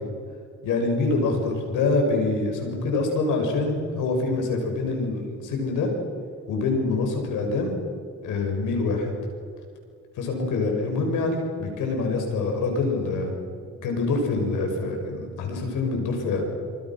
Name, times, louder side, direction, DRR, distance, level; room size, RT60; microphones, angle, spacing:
voice 1, 0.6-5.9 6.5-7.7 8.2-9.1 10.2-13.3 13.8-16.4, left 3 dB, 90° left, 3 dB, 7.2 m, -25 dB
27.5 x 27.5 x 6.4 m, 2.2 s
cardioid pair, 90°, 30 cm